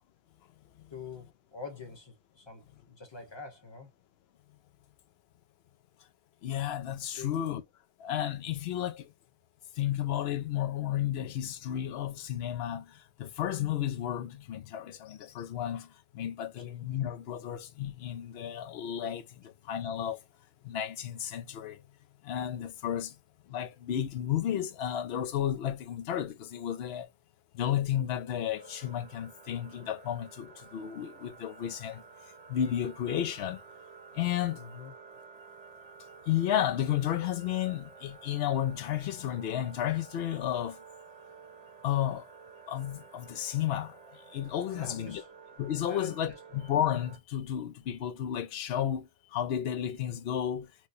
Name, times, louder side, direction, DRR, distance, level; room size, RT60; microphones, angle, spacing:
voice 1, 0.9-3.9 7.1-7.4 16.6-16.7 34.5-34.9 44.7-45.3 45.9-46.4, left 4 dB, 25° left, 1.0 m, -45 dB
voice 2, 6.4-7.6 8.0-9.1 9.8-15.9 16.1-20.2 20.6-21.8 22.2-23.1 23.5-27.1 27.5-32.0 32.5-33.6 34.1-34.6 36.3-40.8 41.8-42.3 42.7-45.2 45.6-50.7, left 10 dB, 70° left, 0.8 m, -32 dB
sound 1, 28.5-47.2, right 5 dB, 45° right, 0.7 m, -52 dB
4.5 x 2.2 x 2.6 m
omnidirectional pair, 1.1 m